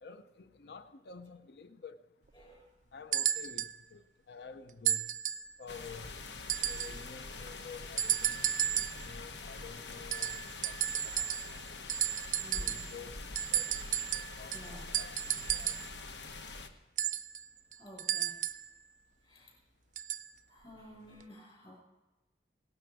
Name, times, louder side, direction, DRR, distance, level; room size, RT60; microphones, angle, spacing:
voice 1, 0.0-2.0 2.9-5.2 5.6-6.3 6.6-8.4 9.0-10.8 11.0-11.6 12.6-13.2 13.5-13.7 14.1-14.6 15.0-15.8, left 5 dB, 65° left, 0.5 m, -50 dB
sound 1, 3.1-3.8 4.9-5.5 6.5-7.0 8.0-9.1 10.1-11.6 11.9-13.0 13.4-15.9 17.0-18.7 20.0-20.3 21.2-21.3, right 11 dB, 45° right, 0.4 m, -33 dB
sound 2, 5.7-16.7, left 3 dB, 80° left, 1.1 m, -45 dB
voice 2, 12.4-12.8 14.5-14.9 17.7-18.4 19.2-19.5 20.5-21.8, equal, 30° left, 4.9 m, -52 dB
17.5 x 12.0 x 4.7 m
head